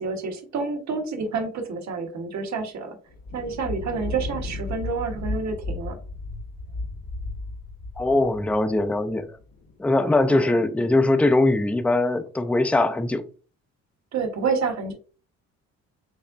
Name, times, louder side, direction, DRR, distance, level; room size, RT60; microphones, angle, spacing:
voice 1, 0.0-3.0 3.3-6.0 10.0-10.5 14.1-14.9, right 4 dB, 65° right, 1.3 m, -29 dB
Thunder, 3.1-9.7, left 2 dB, 90° left, 1.6 m, -34 dB
voice 2, 8.0-9.3 9.8-13.2, left 2 dB, 5° left, 0.5 m, -21 dB
5.4 x 3.5 x 2.5 m
cardioid pair, 90°, 30 cm